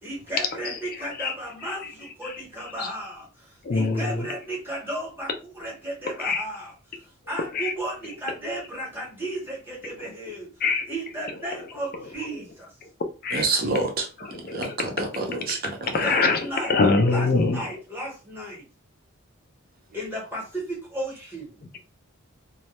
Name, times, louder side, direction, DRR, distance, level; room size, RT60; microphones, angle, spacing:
voice 1, 0.0-6.7 7.3-10.5 10.9-12.7 15.9-16.8 17.0-18.6 19.9-21.6, right 1 dB, 10° right, -3 dB, 0.9 m, -34 dB
voice 2, 3.6-4.3 6.2-6.4 7.5-7.7 10.6-10.9 13.2-13.4 14.2-15.1 15.9-17.6, left 3 dB, 40° left, 6 dB, 0.4 m, -24 dB
voice 3, 13.3-14.1 14.5-16.0, right 3 dB, 40° right, 3 dB, 0.5 m, -27 dB
2.2 x 2.0 x 2.8 m, 0.33 s
head